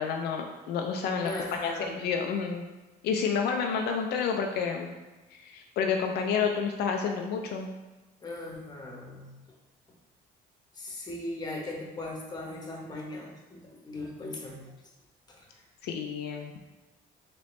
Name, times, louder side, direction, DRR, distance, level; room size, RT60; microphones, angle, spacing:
voice 1, 0.0-1.3 1.6-2.6 3.0-4.9 5.3-7.7 15.8-16.5, left 6 dB, 75° left, 2 dB, 0.4 m, -29 dB
voice 2, 1.2-1.9 8.2-9.3 10.7-14.7 15.3-15.6, left 2 dB, 25° left, -2 dB, 1.0 m, -38 dB
4.2 x 3.1 x 3.1 m, 1.1 s
cardioid pair, 110°, 17 cm